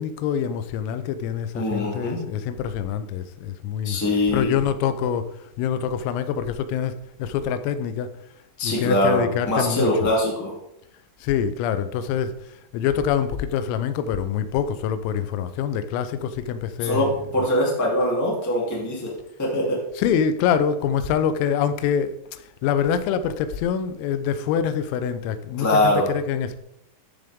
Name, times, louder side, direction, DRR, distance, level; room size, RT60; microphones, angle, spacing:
voice 1, 0.0-4.0 4.3-8.1 8.6-10.1 11.2-17.1 20.0-26.6, left 8 dB, 85° left, 3.4 m, -25 dB
voice 2, 1.5-2.2 3.8-4.6 8.6-10.5 16.8-19.1 19.4-19.8 25.6-26.1, left 1 dB, 5° left, 1.3 m, -22 dB
13.5 x 6.8 x 3.6 m
omnidirectional pair, 5.8 m